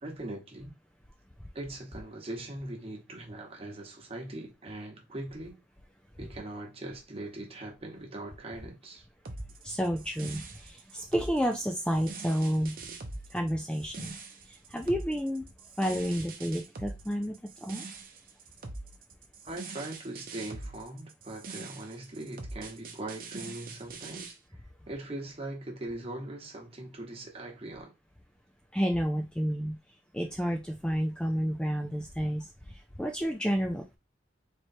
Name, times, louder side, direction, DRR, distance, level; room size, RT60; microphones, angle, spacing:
voice 1, 0.0-0.7 1.5-5.6 6.2-9.1 19.4-24.4 24.9-27.9, right 1 dB, 30° right, 1.2 m, -41 dB
sound 1, 9.2-24.3, right 3 dB, 50° right, 0.8 m, -43 dB
voice 2, 9.6-12.8 13.3-14.2 14.5-15.5 15.8-17.9 28.7-29.8 30.1-34.0, equal, 5° left, 0.4 m, -30 dB
4.3 x 3.1 x 2.7 m
head